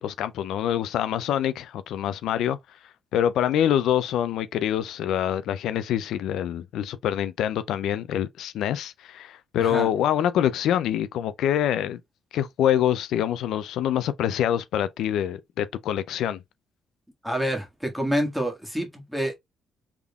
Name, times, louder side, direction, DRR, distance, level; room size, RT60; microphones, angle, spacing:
voice 1, 0.0-2.6 3.1-12.0 12.3-16.4, left 10 dB, 80° left, 0.3 m, -25 dB
voice 2, 17.2-19.3, equal, 5° right, 1.5 m, -27 dB
3.5 x 3.5 x 2.2 m
cardioid pair, 90°, 0 cm